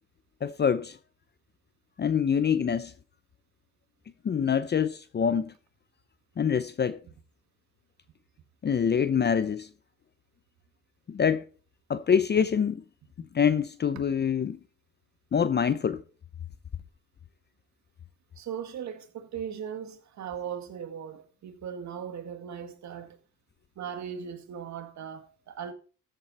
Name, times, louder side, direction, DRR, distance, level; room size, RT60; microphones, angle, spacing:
voice 1, 0.4-1.0 2.0-2.9 4.2-5.5 6.4-7.0 8.6-9.7 11.1-11.4 11.9-12.8 13.3-14.6 15.3-16.0, left 7 dB, 35° left, 0.7 m, -25 dB
voice 2, 18.4-23.2 23.8-25.7, right 8 dB, 65° right, 2.1 m, -38 dB
13.5 x 7.7 x 4.3 m
cardioid pair, 90°, 30 cm